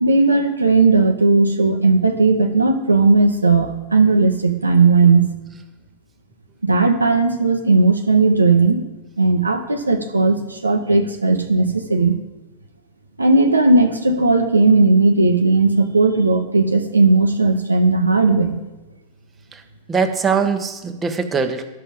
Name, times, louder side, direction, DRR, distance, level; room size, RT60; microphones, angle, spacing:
voice 1, 0.0-5.3 6.6-8.8 9.2-12.2 13.2-18.6, right 3 dB, 80° right, 6 dB, 0.8 m, -16 dB
voice 2, 19.9-21.7, right 5 dB, 15° right, 6 dB, 1.0 m, -21 dB
11.5 x 5.5 x 5.4 m, 1.1 s
figure-of-eight pair, 90°, 0 cm